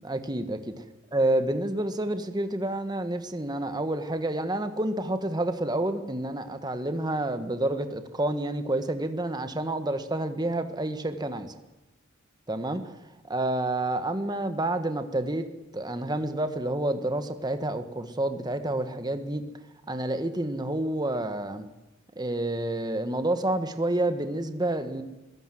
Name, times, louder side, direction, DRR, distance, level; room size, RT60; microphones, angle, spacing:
voice 1, 0.0-0.8 1.1-11.6 12.5-12.8 13.3-15.5 15.7-19.4 19.9-21.7 22.2-25.0, right 1 dB, 20° right, 9 dB, 1.4 m, -29 dB
23.5 x 18.0 x 7.8 m, 1.0 s
head